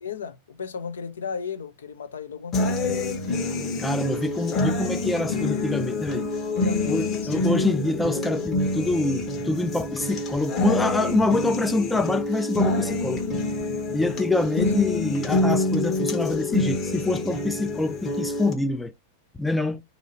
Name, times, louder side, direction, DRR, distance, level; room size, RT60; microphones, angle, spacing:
voice 1, 0.0-3.5 6.6-7.4, left 6 dB, 65° left, 0.5 m, -35 dB
sound 1, 2.5-18.5, left 2 dB, 30° left, 0.9 m, -27 dB
voice 2, 3.8-6.3 6.9-13.3 13.9-18.9 19.4-19.8, left 2 dB, 5° left, 0.4 m, -25 dB
2.8 x 2.6 x 4.1 m
figure-of-eight pair, 90°, 0 cm